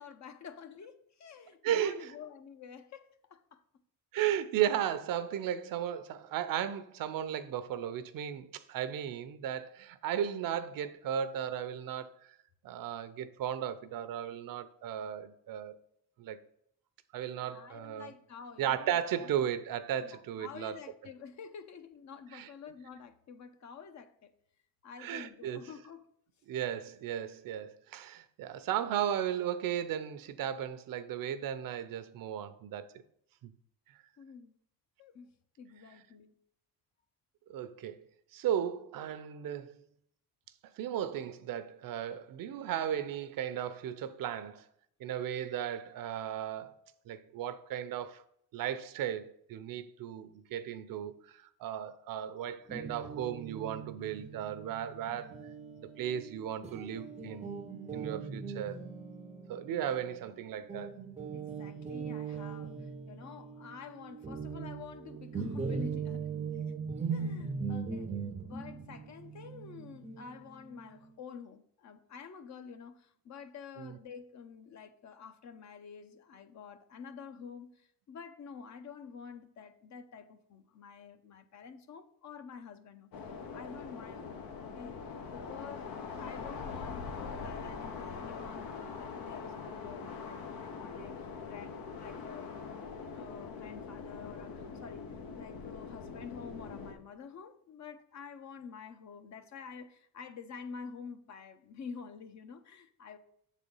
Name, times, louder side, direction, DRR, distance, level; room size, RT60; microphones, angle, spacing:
voice 1, 0.0-3.6 17.4-19.4 20.0-24.3 24.8-26.1 34.2-34.6 35.0-35.3 35.6-36.4 61.3-66.3 67.1-68.1 68.4-83.3 83.5-84.9 85.3-92.5 93.1-95.1 95.3-103.2, left 6 dB, 50° left, 0.8 m, -49 dB
voice 2, 1.6-2.1 4.1-12.1 12.6-15.7 16.2-16.4 17.1-18.1 18.6-20.8 22.3-22.5 25.0-25.6 26.5-32.9 33.4-33.5 37.5-38.0 38.3-39.8 40.8-44.6 45.0-46.7 47.1-48.2 48.5-55.4 56.0-57.5 57.9-58.8 59.5-61.0 73.8-73.9, right 10 dB, 70° right, 0.7 m, -35 dB
Guitar, 52.7-60.4 60.7-71.1, right 5 dB, 20° right, 0.5 m, -40 dB
sound 1, 83.1-96.9, left 5 dB, 80° left, 1.1 m, -43 dB
7.2 x 4.2 x 5.4 m
cardioid pair, 125°, 35 cm